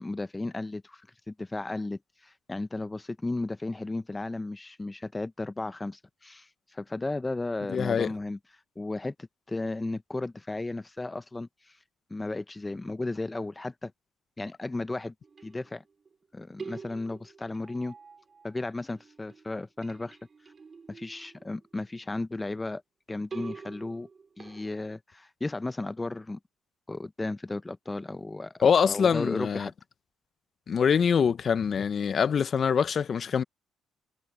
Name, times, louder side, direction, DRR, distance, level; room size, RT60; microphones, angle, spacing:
voice 1, 0.0-8.4 8.8-9.1 9.5-11.8 12.1-13.9 14.4-15.1 15.4-15.8 16.3-17.9 18.4-20.2 20.9-22.8 23.1-24.1 24.4-26.4 26.9-29.7, left 2 dB, 20° left, 0.8 m, -34 dB
voice 2, 7.7-8.1 28.6-29.7 30.7-33.4, left 7 dB, 50° left, 1.0 m, -24 dB
sound 1, 15.2-16.1 16.6-18.6 18.9-21.9 23.3-25.0, right 5 dB, 40° right, 5.2 m, -46 dB
supercardioid pair, 70°, 0 cm